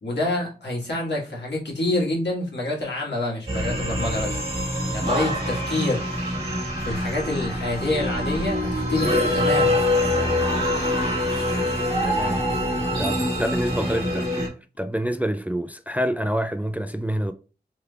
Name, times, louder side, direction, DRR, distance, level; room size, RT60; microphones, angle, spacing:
voice 1, 0.0-4.4 4.9-6.1 6.8-9.9, left 2 dB, 80° left, 1.6 m, -27 dB
sound 1, 3.5-14.5, left 1 dB, 35° right, 1.6 m, -24 dB
voice 2, 12.0-12.4 13.0-14.5 14.8-17.3, equal, 10° right, 0.3 m, -27 dB
3.4 x 3.3 x 2.3 m
wide cardioid pair, 45°, 17 cm